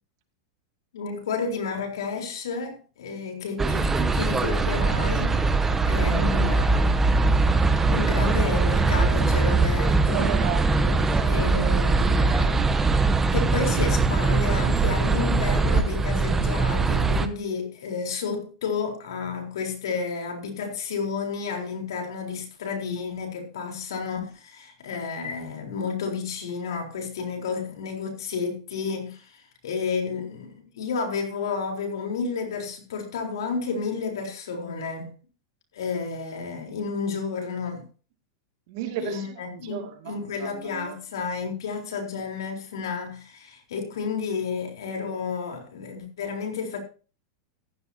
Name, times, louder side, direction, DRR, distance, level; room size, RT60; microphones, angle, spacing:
voice 1, 0.9-7.0 7.9-10.4 11.3-12.8 13.3-35.1 35.7-37.8 39.0-46.8, left 5 dB, 90° left, 4.0 m, -31 dB
sound 1, 3.6-17.3, right 3 dB, 15° right, 0.9 m, -21 dB
voice 2, 10.1-11.5 38.7-41.0, right 10 dB, 60° right, 2.4 m, -35 dB
14.5 x 11.5 x 2.8 m
supercardioid pair, 135°, 2 cm